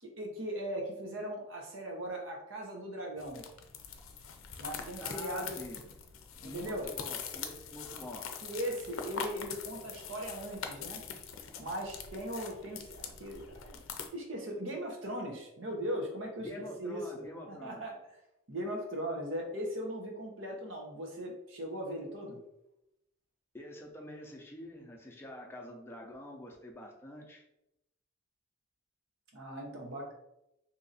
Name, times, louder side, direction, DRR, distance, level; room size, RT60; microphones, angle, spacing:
voice 1, 0.0-3.4 4.6-5.6 6.4-6.9 8.4-11.0 11.6-13.8 14.1-16.5 16.8-18.0 18.5-22.4 29.3-30.1, equal, 75° right, 1 dB, 0.9 m, -39 dB
sound 1, 3.2-14.1, left 6 dB, 90° left, 0.5 m, -43 dB
voice 2, 5.0-5.8 6.4-8.3 16.4-17.8 23.5-27.4, left 1 dB, 10° left, 0 dB, 0.5 m, -46 dB
2.8 x 2.5 x 4.0 m, 0.86 s
head